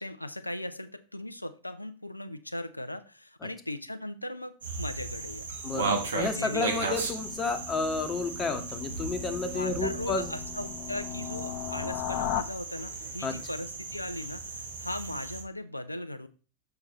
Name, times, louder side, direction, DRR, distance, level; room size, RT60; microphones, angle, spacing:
voice 1, 0.0-5.5 6.2-6.8 9.5-16.3, left 1 dB, 85° left, 10 dB, 0.4 m, -38 dB
sound 1, 4.6-15.4, right 4 dB, 70° right, 1.4 m, -36 dB
voice 2, 5.6-10.3 13.2-13.4, left 3 dB, 20° left, 7 dB, 1.1 m, -31 dB
sound 2, 6.9-12.4, left 11 dB, 35° left, 0.6 m, -38 dB
6.6 x 5.8 x 4.2 m, 0.37 s
figure-of-eight pair, 90°, 0 cm